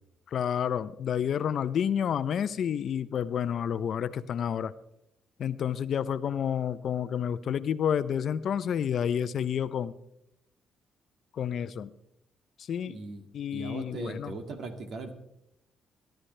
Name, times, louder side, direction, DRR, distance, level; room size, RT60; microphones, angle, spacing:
voice 1, 0.3-4.7 5.4-9.9 11.3-11.9 12.7-13.0 13.3-14.3, left 8 dB, 60° left, 15 dB, 0.6 m, -29 dB
voice 2, 12.8-13.2 13.5-15.1, right 3 dB, 65° right, 6 dB, 2.1 m, -39 dB
22.5 x 11.5 x 3.3 m, 0.81 s
cardioid pair, 90°, 0 cm